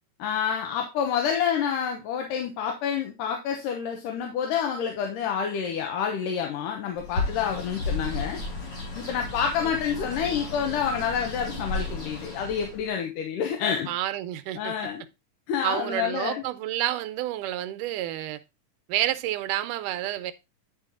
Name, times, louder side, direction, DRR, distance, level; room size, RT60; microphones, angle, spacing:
voice 1, 0.2-8.4 8.9-13.9 14.6-15.0 15.5-16.4, left 7 dB, 80° left, 2.6 m, -28 dB
Bird, 7.0-12.9, left 3 dB, 50° left, 5.0 m, -33 dB
voice 2, 13.9-14.8 15.6-18.4 18.9-20.3, right 14 dB, 80° right, 2.1 m, -29 dB
9.6 x 4.7 x 3.7 m
omnidirectional pair, 3.8 m